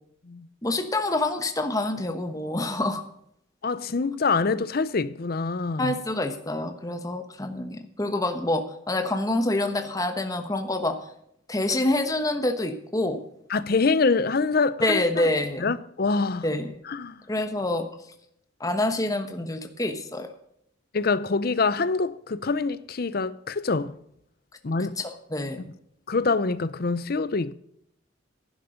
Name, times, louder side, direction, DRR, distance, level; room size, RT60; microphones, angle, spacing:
voice 1, 0.6-3.0 5.8-11.0 11.5-13.2 14.8-15.6 16.4-16.7 17.3-17.9 18.6-20.3 25.0-25.6, left 2 dB, 20° left, 1.1 m, -27 dB
voice 2, 3.6-6.0 13.5-15.3 15.6-16.5 16.9-17.2 20.9-23.9 24.6-25.0 26.1-27.5, left 4 dB, 50° left, 0.6 m, -25 dB
11.5 x 10.5 x 5.1 m
head